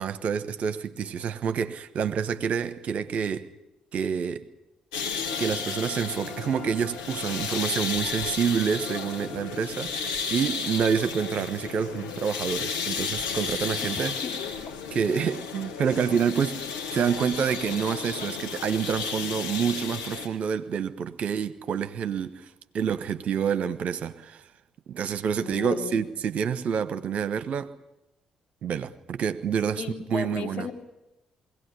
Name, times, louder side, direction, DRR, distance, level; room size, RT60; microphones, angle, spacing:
voice 1, 0.0-3.5 3.9-4.5 5.4-14.1 14.9-22.4 22.7-24.4 24.9-27.7 28.6-29.8 30.1-30.7, right 7 dB, 55° right, 1.1 m, -28 dB
sound 1, 4.9-20.3, left 6 dB, 80° left, 1.6 m, -33 dB
Trumpet, 5.3-9.7, left 3 dB, 35° left, 2.8 m, -46 dB
voice 2, 14.2-14.8 25.4-26.0 29.7-30.7, left 6 dB, 60° left, 2.9 m, -35 dB
21.5 x 17.0 x 9.8 m
hypercardioid pair, 45°, 3 cm